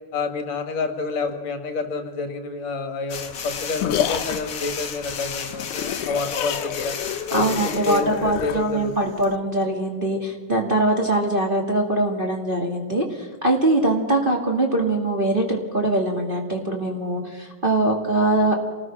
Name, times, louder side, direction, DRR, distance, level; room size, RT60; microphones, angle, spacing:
voice 1, 0.1-7.0 7.3-9.1, left 4 dB, 65° left, 7 dB, 2.9 m, -29 dB
sound 1, 3.1-8.6, left 6 dB, 45° left, 1.9 m, -33 dB
sound 2, 3.3-9.4, left 10 dB, 90° left, 2.5 m, -30 dB
voice 2, 7.3-18.6, right 1 dB, 20° right, 0 dB, 2.2 m, -22 dB
28.5 x 19.5 x 6.1 m, 1.5 s
omnidirectional pair, 3.4 m